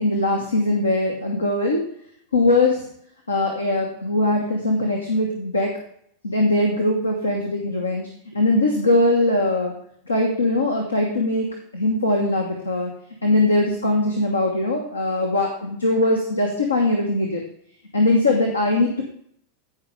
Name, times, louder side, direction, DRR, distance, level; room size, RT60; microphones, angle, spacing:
voice 1, 0.0-1.8 2.3-2.9 3.3-5.8 6.2-9.7 10.1-12.9 13.2-17.4 17.9-19.0, left 2 dB, 80° left, 1 dB, 1.2 m, -21 dB
15.0 x 5.4 x 3.4 m, 0.67 s
figure-of-eight pair, 90°, 0 cm